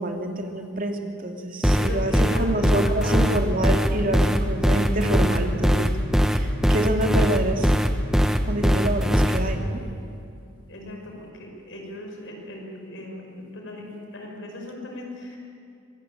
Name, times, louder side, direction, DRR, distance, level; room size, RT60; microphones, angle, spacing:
voice 1, 0.0-5.9 6.3-7.7 8.5-9.8, right 1 dB, 40° right, 3 dB, 2.4 m, -27 dB
sound 1, 1.6-9.4, equal, 5° right, 1.1 m, -20 dB
voice 2, 1.8-2.5 2.8-3.3 10.7-13.8 14.1-15.4, left 1 dB, 60° left, 1 dB, 5.5 m, -38 dB
24.0 x 20.5 x 8.9 m, 2.5 s
head